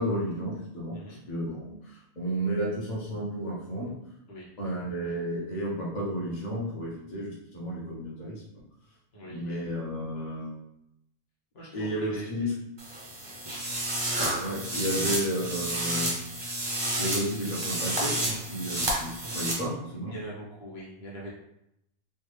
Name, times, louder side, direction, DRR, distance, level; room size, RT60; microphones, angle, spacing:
voice 1, 0.0-3.9 4.6-8.4 9.3-10.6 11.7-12.5 14.4-16.2 16.6-16.7 17.0-20.1, equal, 45° left, -6 dB, 0.9 m, -32 dB
voice 2, 0.9-1.2 4.3-4.5 9.1-9.6 11.5-12.3 13.2-13.4 19.2-19.5 20.0-21.3, right 1 dB, 65° left, -5 dB, 1.2 m, -43 dB
sound 1, 12.8-19.5, right 1 dB, 30° right, 0.6 m, -30 dB
3.4 x 2.2 x 3.1 m, 0.83 s
omnidirectional pair, 1.1 m